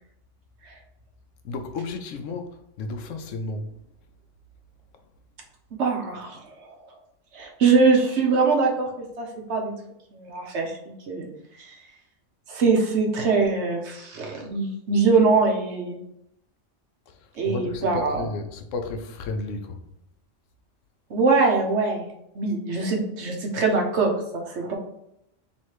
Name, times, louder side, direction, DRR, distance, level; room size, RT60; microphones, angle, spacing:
voice 1, 1.4-3.8 17.1-19.8, left 3 dB, 85° left, 1.0 m, -33 dB
voice 2, 5.7-6.7 7.3-8.9 9.2-9.7 10.1-10.8 11.1-11.3 11.6-11.8 12.5-16.0 17.4-18.3 21.1-22.1 22.3-24.7, right 4 dB, 70° right, 1.1 m, -23 dB
3.2 x 3.1 x 4.5 m
omnidirectional pair, 1.3 m